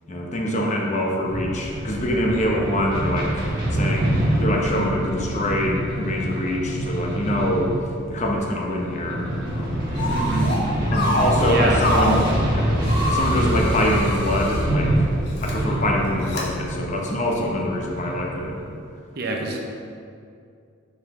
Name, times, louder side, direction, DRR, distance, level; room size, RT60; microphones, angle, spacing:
voice 1, 0.1-3.5 3.7-7.7 8.1-9.8 10.9-15.1 15.4-18.6, left 1 dB, 35° left, 0 dB, 0.7 m, -25 dB
sound 1, 1.3-18.8, right 1 dB, 20° right, 1.3 m, -25 dB
sound 2, 10.0-10.6 10.9-12.3 12.8-14.6 15.3-15.5 16.3-16.4, left 1 dB, 55° left, 1.1 m, -26 dB
voice 2, 10.1-10.5 11.4-11.8 19.2-19.6, right 2 dB, 50° right, 1 dB, 0.7 m, -26 dB
6.5 x 4.9 x 3.6 m, 2.4 s
head